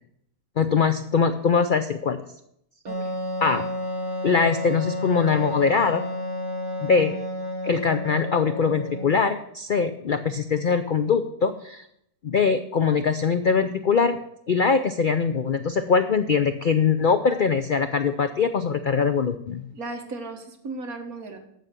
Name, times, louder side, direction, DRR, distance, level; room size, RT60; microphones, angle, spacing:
voice 1, 0.6-2.2 3.4-3.6 4.2-6.0 6.8-7.2 7.6-11.8 12.2-14.2 14.5-19.6, left 5 dB, 85° left, 9 dB, 0.4 m, -22 dB
voice 2, 2.8-3.1 19.7-21.4, right 3 dB, 60° right, 4 dB, 2.0 m, -36 dB
Wind instrument woodwind instrument, 2.9-9.3, left 1 dB, 15° right, 2.7 m, -31 dB
14.5 x 5.9 x 6.7 m, 0.75 s
omnidirectional pair, 1.7 m